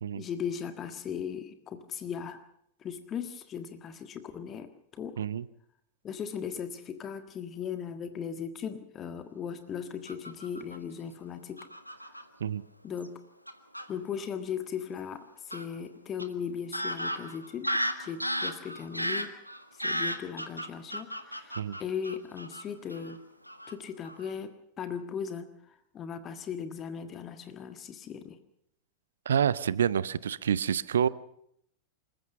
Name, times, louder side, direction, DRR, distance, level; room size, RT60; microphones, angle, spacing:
voice 1, 0.2-2.4 2.8-5.2 6.0-11.7 12.0-12.2 12.8-13.2 13.9-19.3 19.7-23.2 23.7-28.4, left 7 dB, 25° left, 9 dB, 1.6 m, -38 dB
Fowl / Bird vocalization bird call bird song, 10.1-10.8 11.6-12.2 13.0-13.1 13.5-13.9 15.5-15.6 16.2-16.3 16.7-22.6 22.9-23.2 23.5-23.7 24.1-24.3, equal, 90° right, 1.5 m, -34 dB
voice 2, 29.3-31.1, right 8 dB, 65° right, 19 dB, 0.7 m, -27 dB
26.5 x 14.5 x 6.9 m, 0.73 s
figure-of-eight pair, 90°, 0 cm